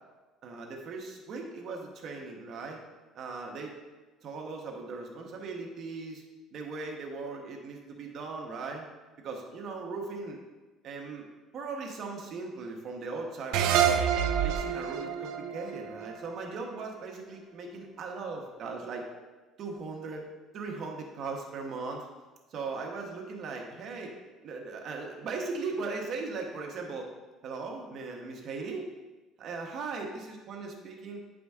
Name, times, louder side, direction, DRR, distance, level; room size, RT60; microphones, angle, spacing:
voice 1, 0.4-2.8 3.1-3.7 4.2-6.2 6.5-8.9 9.2-10.4 10.8-11.2 11.5-14.0 14.4-19.0 19.6-20.2 20.5-22.1 22.5-24.1 24.4-27.1 27.4-28.9 29.4-31.2, right 4 dB, 45° right, 1 dB, 1.1 m, -38 dB
sound 1, 13.5-16.8, right 9 dB, 75° right, 0.6 m, -28 dB
9.7 x 5.0 x 3.6 m, 1.2 s
cardioid pair, 155°, 0 cm